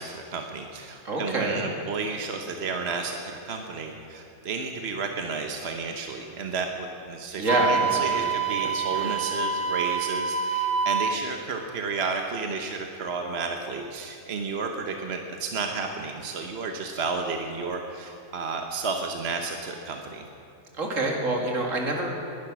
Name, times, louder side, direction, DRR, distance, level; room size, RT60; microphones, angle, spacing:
voice 1, 0.0-20.2, right 4 dB, 55° right, 3 dB, 1.2 m, -32 dB
voice 2, 1.0-1.8 7.4-8.3 8.6-9.2 20.8-22.1, right 2 dB, 70° right, 1 dB, 2.5 m, -27 dB
Wind instrument woodwind instrument, 7.5-11.2, right 5 dB, 15° right, 0.5 m, -26 dB
20.5 x 11.0 x 6.0 m, 2.8 s
omnidirectional pair, 1.4 m